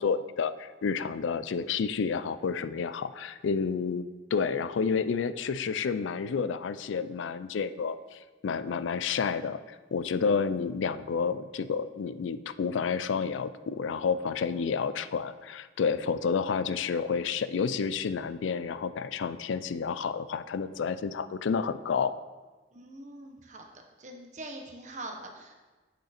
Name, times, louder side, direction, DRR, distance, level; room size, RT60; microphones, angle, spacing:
voice 1, 0.0-4.1 4.3-22.1, left 5 dB, 90° left, 14 dB, 0.4 m, -30 dB
voice 2, 22.7-23.6 24.0-25.5, right 2 dB, 40° right, 3 dB, 0.9 m, -43 dB
8.3 x 6.5 x 4.3 m, 1.3 s
head